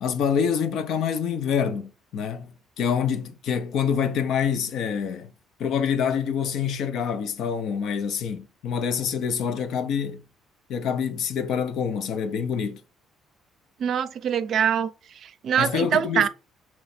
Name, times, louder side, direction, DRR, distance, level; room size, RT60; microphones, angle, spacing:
voice 1, 0.0-5.3 5.6-10.2 10.7-12.8 15.6-16.3, left 7 dB, 75° left, 0.5 m, -26 dB
voice 2, 13.8-14.9 15.2-16.3, right 8 dB, 60° right, 0.4 m, -24 dB
3.2 x 3.0 x 4.2 m
cardioid pair, 95°, 0 cm